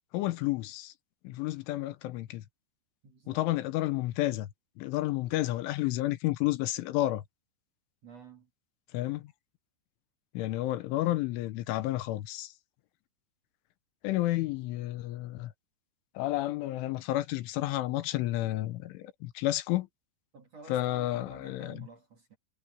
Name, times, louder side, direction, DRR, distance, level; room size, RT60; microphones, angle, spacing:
voice 1, 0.1-0.9 1.3-2.4 3.3-4.5 4.8-7.2 8.9-9.2 10.4-12.5 14.0-15.5 16.2-19.9 20.7-21.9, left 16 dB, 85° left, 3.6 m, -31 dB
voice 2, 3.0-3.5 8.0-8.5 20.3-22.4, right 4 dB, 45° right, 2.4 m, -51 dB
omnidirectional pair, 5.4 m